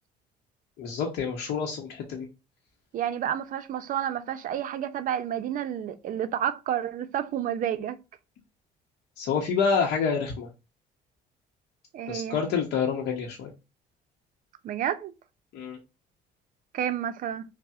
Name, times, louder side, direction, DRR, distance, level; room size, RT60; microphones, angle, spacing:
voice 1, 0.8-2.3 9.2-10.5 12.1-13.5 15.5-15.8, left 6 dB, 75° left, 0.7 m, -28 dB
voice 2, 2.9-8.0 11.9-12.4 14.6-15.1 16.7-17.4, right 10 dB, 55° right, 0.4 m, -30 dB
5.4 x 2.0 x 2.3 m
cardioid pair, 110°, 17 cm